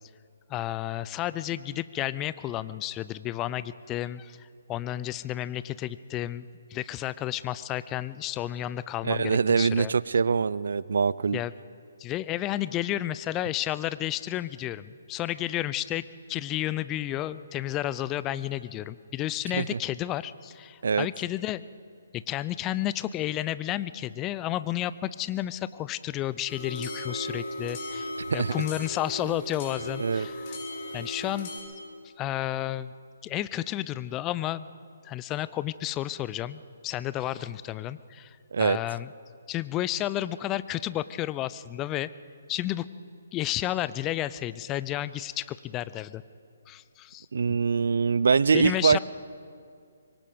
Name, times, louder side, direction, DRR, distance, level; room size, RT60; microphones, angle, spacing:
voice 1, 0.5-9.9 11.3-11.5 12.0-21.6 22.1-30.6 30.9-31.5 32.2-32.9 33.2-34.7 35.0-39.1 39.5-42.1 42.5-42.8 43.3-46.2 46.7-47.6 48.5-49.0, left 13 dB, 20° left, 16 dB, 0.6 m, -32 dB
voice 2, 9.0-11.4 19.6-19.8 20.8-21.1 28.3-28.5 30.0-30.3 38.5-38.8 47.3-49.0, right 5 dB, 65° right, 20 dB, 0.5 m, -23 dB
sound 1, 26.5-31.6, left 1 dB, 35° left, 6.4 m, -36 dB
25.0 x 23.0 x 5.2 m, 2.3 s
figure-of-eight pair, 140°, 0 cm